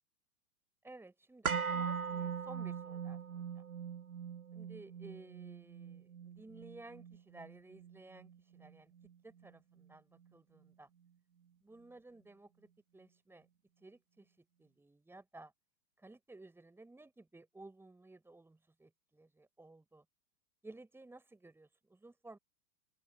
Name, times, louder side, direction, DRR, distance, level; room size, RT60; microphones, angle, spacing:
voice 1, 0.8-3.6 4.5-8.9 9.2-10.9 11.6-12.7 12.9-13.5 13.8-15.5 16.0-20.0 20.6-22.4, right 2 dB, 5° right, 5.7 m, -56 dB
sound 1, 1.4-9.5 9.8-9.9, right 6 dB, 80° right, 1.4 m, -41 dB
open air
figure-of-eight pair, 105°, 42 cm